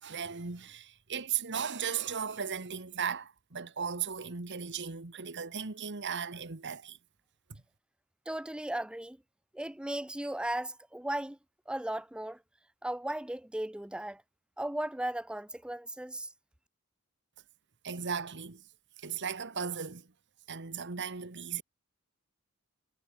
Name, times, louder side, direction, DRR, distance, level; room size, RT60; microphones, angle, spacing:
voice 1, 0.0-7.0 7.5-7.6 17.8-18.6 19.0-20.1 20.5-21.6, right 7 dB, 55° right, 1.5 m, -36 dB
voice 2, 8.3-9.2 9.5-11.4 11.7-12.4 12.8-14.2 14.6-16.3, right 1 dB, 5° right, 0.5 m, -36 dB
head